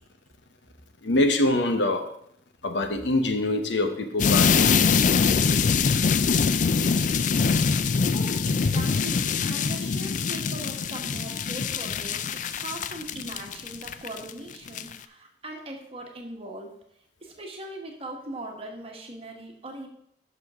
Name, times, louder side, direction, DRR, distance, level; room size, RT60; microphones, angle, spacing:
voice 1, 1.0-2.0 2.6-4.8, left 1 dB, 85° left, 7 dB, 1.0 m, -24 dB
sound 1, 4.2-14.3 14.7-15.0, left 5 dB, 45° left, 0.4 m, -23 dB
voice 2, 7.6-16.7 17.2-19.9, right 1 dB, 35° right, 1 dB, 1.4 m, -40 dB
10.5 x 6.1 x 3.6 m, 0.72 s
head